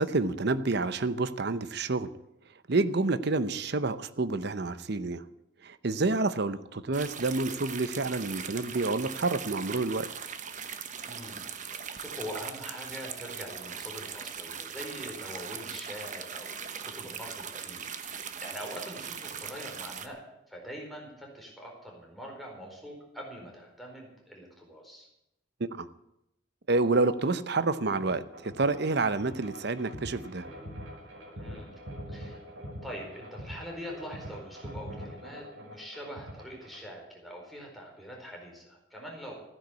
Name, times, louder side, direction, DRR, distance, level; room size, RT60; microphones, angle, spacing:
voice 1, 0.0-2.1 2.7-5.2 5.6-10.1 25.6-25.9 26.7-30.5, right 3 dB, 60° right, 14 dB, 0.8 m, -28 dB
sound 1, 6.9-20.1, right 7 dB, 40° right, 1.1 m, -40 dB
voice 2, 11.0-20.2 20.5-25.1 31.3-31.7 32.1-32.4 32.8-39.3, equal, ahead, -1 dB, 4.4 m, -43 dB
sound 2, 28.0-36.9, equal, 90° right, 4.6 m, -43 dB
15.0 x 10.5 x 8.3 m, 0.86 s
head